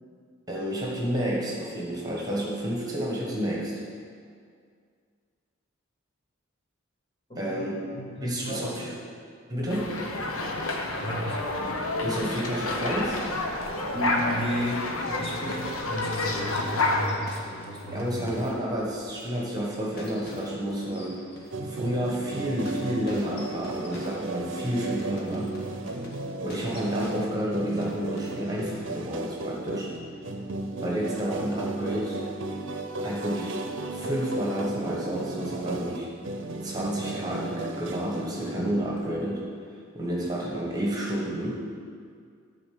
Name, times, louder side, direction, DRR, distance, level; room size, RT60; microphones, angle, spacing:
voice 1, 0.5-3.8 7.3-7.8 8.2-8.9 9.5-9.9 12.0-13.2 17.9-21.2 21.6-25.6 26.4-29.9 30.8-32.2 33.0-33.6 33.9-36.1 36.6-39.5 39.9-41.6, equal, 20° right, -4 dB, 1.4 m, -30 dB
voice 2, 7.3-9.0 11.0-11.4 13.9-14.9 15.2-18.4, equal, 25° left, -4 dB, 1.5 m, -34 dB
sound 1, 9.7-17.1, left 2 dB, 90° left, 1.1 m, -29 dB
sound 2, 15.2-29.1, left 1 dB, 50° left, 1.5 m, -47 dB
sound 3, 21.5-38.9, right 2 dB, 60° right, 0.7 m, -35 dB
12.0 x 4.1 x 7.6 m, 2.2 s
head